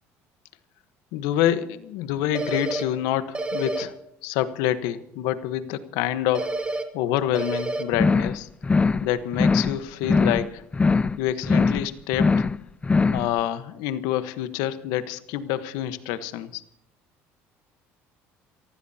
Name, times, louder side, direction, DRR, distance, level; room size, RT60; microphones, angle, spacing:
voice 1, 1.1-3.9 4.2-6.5 6.9-8.5 9.0-10.6 11.2-12.5 13.1-16.6, left 12 dB, 80° left, 12 dB, 1.2 m, -27 dB
sound 1, 2.3-2.8 3.3-3.8 6.3-6.8 7.3-7.8, right 2 dB, 20° right, 2.3 m, -28 dB
sound 2, 7.9-8.4 8.6-9.1 9.3-9.8 10.0-10.5 10.7-11.2 11.4-11.9 12.1-12.6 12.8-13.3, left 4 dB, 20° left, 0.5 m, -21 dB
28.5 x 15.5 x 2.9 m, 0.79 s
supercardioid pair, 90°, 6 cm